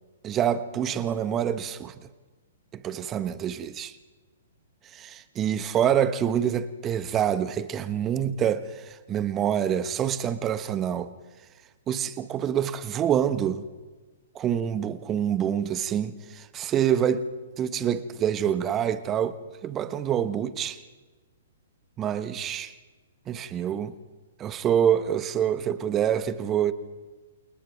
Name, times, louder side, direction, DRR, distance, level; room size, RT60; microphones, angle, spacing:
voice 1, 0.2-1.9 2.7-3.9 4.9-11.1 11.9-13.6 14.3-17.3 17.6-19.4 19.6-20.8 22.0-22.7 23.3-23.9 24.4-26.7, right 9 dB, 25° right, 1.2 m, -26 dB
29.0 x 28.5 x 3.6 m
hypercardioid pair, 120°, 0 cm